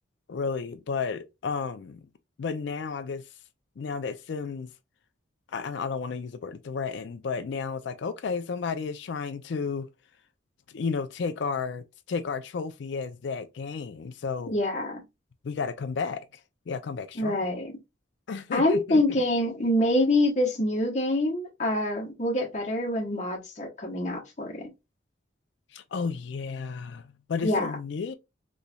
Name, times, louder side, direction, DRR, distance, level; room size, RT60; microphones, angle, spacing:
voice 1, 0.3-2.1 2.4-3.3 3.8-4.7 5.5-9.9 10.7-14.6 15.4-16.3 16.7-17.5 18.3-19.2 25.7-28.1, left 5 dB, 65° left, 0.4 m, -32 dB
voice 2, 14.5-15.0 17.2-17.7 18.5-24.7 27.4-27.7, left 1 dB, 35° left, 0.9 m, -26 dB
3.9 x 3.0 x 2.2 m
head